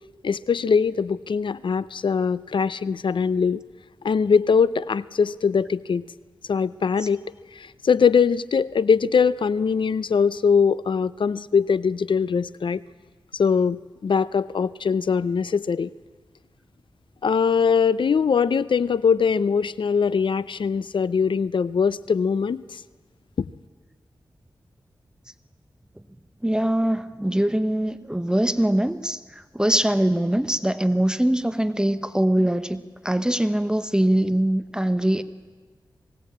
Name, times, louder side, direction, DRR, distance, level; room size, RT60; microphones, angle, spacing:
voice 1, 0.2-3.6 4.0-6.1 6.5-7.2 7.5-12.8 13.3-15.9 17.2-22.8 23.4-23.5, left 6 dB, 70° left, 18 dB, 0.6 m, -22 dB
voice 2, 26.4-35.2, right 1 dB, 10° right, 11 dB, 1.0 m, -22 dB
20.5 x 17.0 x 8.7 m, 1.4 s
cardioid pair, 60°, 9 cm